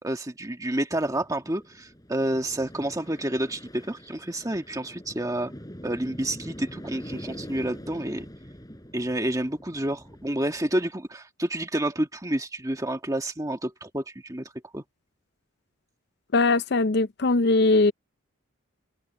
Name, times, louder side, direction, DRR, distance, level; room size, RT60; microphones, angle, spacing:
voice 1, 0.0-5.5 5.8-8.3 8.9-14.8, right 1 dB, 15° right, 1.6 m, -29 dB
sound 1, 0.9-10.7, equal, 20° left, 4.4 m, -44 dB
voice 2, 16.3-17.9, left 3 dB, 50° left, 0.5 m, -20 dB
head